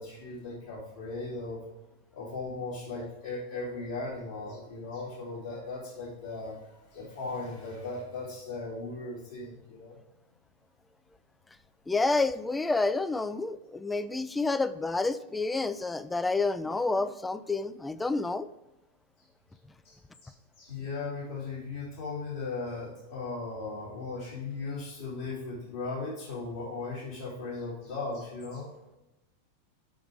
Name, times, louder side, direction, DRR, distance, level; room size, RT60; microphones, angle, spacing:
voice 1, 0.0-1.6 2.1-6.6 6.9-10.0 19.8-20.0 20.2-28.7, left 3 dB, 60° left, -9 dB, 2.7 m, -37 dB
voice 2, 11.9-18.5, left 3 dB, 10° left, 13 dB, 0.3 m, -29 dB
6.3 x 5.7 x 4.5 m, 0.97 s
figure-of-eight pair, 90°, 0 cm